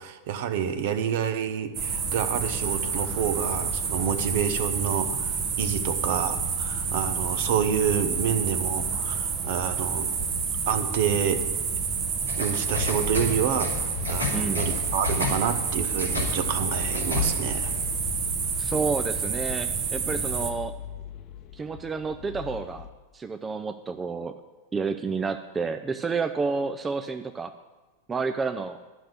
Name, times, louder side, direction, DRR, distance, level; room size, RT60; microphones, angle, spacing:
voice 1, 0.0-10.1 10.7-11.4 12.4-17.7, right 8 dB, 50° right, 10 dB, 0.9 m, -28 dB
sound 1, 1.7-20.5, right 5 dB, 35° right, 1.2 m, -29 dB
sound 2, 12.3-17.8, left 4 dB, 90° right, 2.8 m, -33 dB
sound 3, 12.7-22.9, left 10 dB, 35° left, 0.8 m, -41 dB
voice 2, 14.3-14.7 18.6-20.7 21.5-22.9 23.1-24.3 24.7-27.5 28.1-28.8, right 4 dB, 15° right, 8 dB, 0.5 m, -30 dB
12.0 x 6.4 x 9.0 m, 1.2 s
figure-of-eight pair, 90°, 0 cm